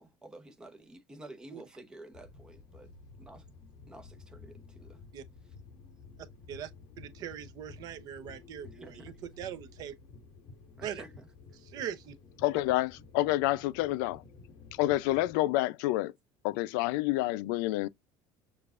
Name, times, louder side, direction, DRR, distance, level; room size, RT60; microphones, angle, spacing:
voice 1, 0.0-2.9 3.2-3.4 3.9-5.0 8.7-9.2 10.8-11.3 12.5-12.6, right 1 dB, 5° right, 0.8 m, -50 dB
sound 1, 2.1-15.4, left 4 dB, 45° left, 1.2 m, -53 dB
voice 2, 7.0-9.9 10.8-11.0 11.6-12.1, right 9 dB, 40° right, 0.7 m, -41 dB
voice 3, 12.4-14.2 14.8-16.1 16.4-17.9, left 17 dB, 80° left, 0.4 m, -28 dB
6.9 x 2.4 x 2.4 m
cardioid pair, 175°, 10 cm